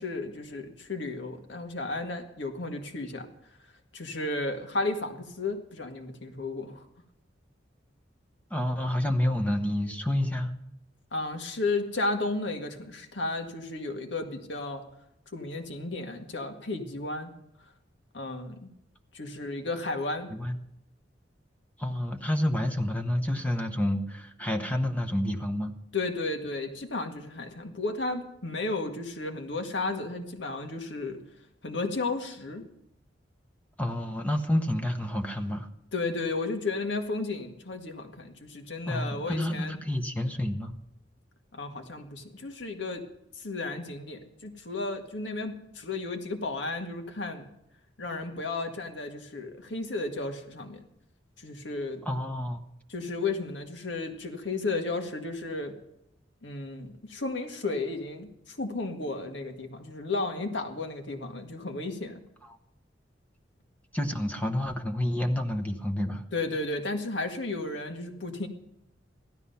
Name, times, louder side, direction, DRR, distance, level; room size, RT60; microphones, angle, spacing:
voice 1, 0.0-3.3 3.9-6.8 11.1-14.8 15.3-17.3 18.1-18.7 19.1-20.3 25.9-31.2 31.6-32.6 35.9-39.8 41.5-43.0 43.4-47.5 48.0-50.8 51.4-52.0 52.9-55.7 56.4-62.1 66.3-68.5, left 3 dB, 70° left, 4 dB, 1.9 m, -33 dB
voice 2, 8.5-10.5 20.3-20.6 21.8-25.7 33.8-35.7 38.9-40.7 52.0-52.6 63.9-66.2, left 1 dB, 10° left, 5 dB, 1.0 m, -29 dB
16.0 x 12.5 x 5.6 m, 0.83 s
head